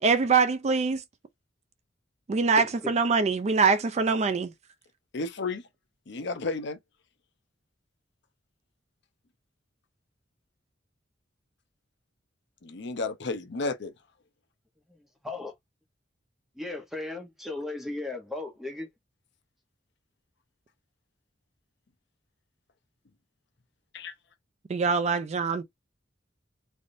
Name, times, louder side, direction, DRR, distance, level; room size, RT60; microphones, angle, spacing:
voice 1, 0.0-1.0 2.3-4.5 24.7-25.6, right 4 dB, 35° right, 0.4 m, -24 dB
voice 2, 2.6-2.9 14.9-15.5 16.5-18.9, left 2 dB, ahead, 0.9 m, -36 dB
voice 3, 5.1-5.6 6.1-6.8 12.6-13.9 23.9-24.1, left 3 dB, 65° left, 0.7 m, -32 dB
3.3 x 2.5 x 2.6 m
head